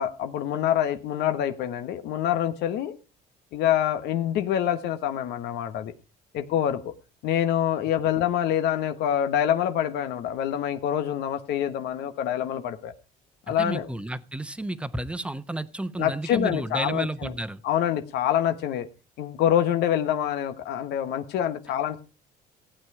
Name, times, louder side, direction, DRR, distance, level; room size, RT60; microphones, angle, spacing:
voice 1, 0.0-2.9 3.5-5.9 6.3-6.9 7.2-12.9 13.5-13.9 16.0-17.3 17.6-18.9 19.2-22.0, left 10 dB, 85° left, 8 dB, 1.2 m, -26 dB
voice 2, 13.5-17.6, right 1 dB, 5° right, 13 dB, 1.0 m, -32 dB
15.5 x 8.9 x 4.8 m, 0.32 s
cardioid pair, 110°, 17 cm